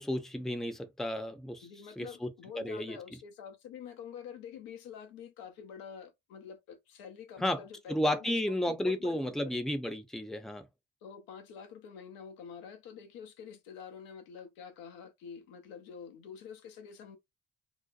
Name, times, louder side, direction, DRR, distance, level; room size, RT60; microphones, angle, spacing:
voice 1, 0.0-1.7 2.0-2.3 2.5-3.0 7.4-7.6 7.9-10.6, left 1 dB, ahead, 0.6 m, -32 dB
voice 2, 1.6-9.6 11.0-17.2, left 7 dB, 80° left, 0.6 m, -47 dB
2.7 x 2.1 x 2.4 m
hypercardioid pair, 45°, 34 cm